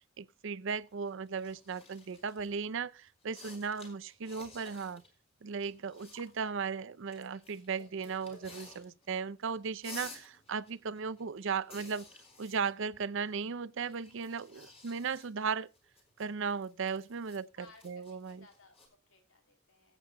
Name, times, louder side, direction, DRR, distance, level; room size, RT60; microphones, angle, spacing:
voice 1, 0.2-5.0 5.4-12.1 12.4-15.7 16.2-17.5 17.8-18.4, right 5 dB, 65° right, 0.5 m, -36 dB
sound 1, 0.7-2.5 3.1-5.1 5.4-6.5 7.1-9.2 9.4-13.4 13.8-18.9, left 3 dB, 30° left, 3.9 m, -54 dB
voice 2, 14.3-14.7 17.2-20.0, left 4 dB, 80° left, 3.1 m, -62 dB
22.5 x 8.3 x 2.2 m
head